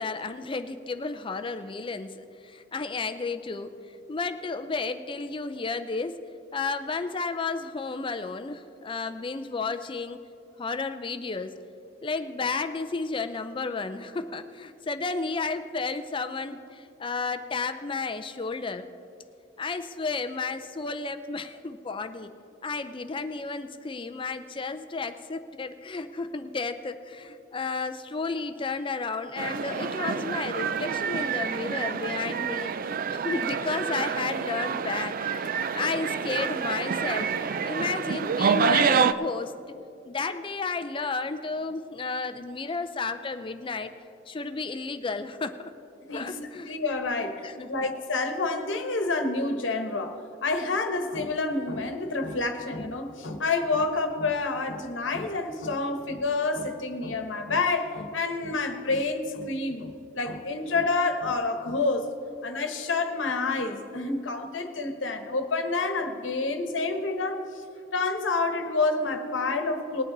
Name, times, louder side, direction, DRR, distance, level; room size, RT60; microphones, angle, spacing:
voice 1, 0.0-3.7 4.1-6.2 6.5-10.2 10.6-11.6 12.0-18.9 19.6-22.3 22.6-32.7 33.1-37.3 37.6-39.5 40.0-43.9 44.3-45.7 46.1-46.7 47.4-47.7, left 4 dB, 25° left, 9 dB, 0.5 m, -32 dB
sound 1, 29.4-39.1, right 6 dB, 45° right, 0.4 m, -27 dB
voice 2, 46.1-47.4 47.7-62.1 62.4-67.6 67.9-70.0, left 3 dB, 75° left, 6 dB, 1.2 m, -28 dB
20.0 x 8.6 x 4.0 m, 2.7 s
head